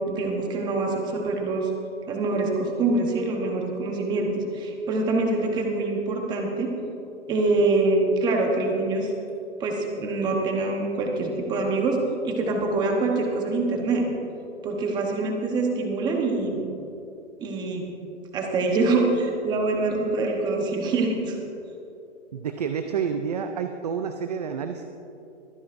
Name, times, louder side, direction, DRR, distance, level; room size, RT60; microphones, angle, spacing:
voice 1, 0.1-1.7 2.1-6.7 7.3-9.1 9.6-12.0 12.2-14.1 14.6-16.7 17.4-17.9 18.3-21.4, right 3 dB, 10° right, 1 dB, 1.0 m, -25 dB
voice 2, 22.3-24.9, right 6 dB, 35° right, 7 dB, 0.4 m, -29 dB
23.0 x 10.5 x 2.6 m, 2.8 s
hypercardioid pair, 160°, 37 cm